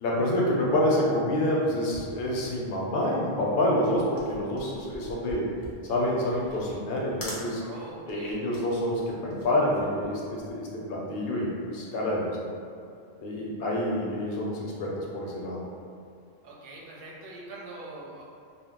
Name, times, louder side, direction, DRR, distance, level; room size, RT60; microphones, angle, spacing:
voice 1, 0.0-5.6 5.8-7.6 8.1-12.5 13.2-15.6, left 1 dB, 65° left, -3 dB, 0.8 m, -27 dB
sound 1, 4.2-10.6, equal, 30° left, 0.4 m, -44 dB
voice 2, 7.6-8.4 16.4-18.2, right 2 dB, 60° right, -5 dB, 0.8 m, -43 dB
2.2 x 2.0 x 3.6 m, 2.4 s
omnidirectional pair, 1.2 m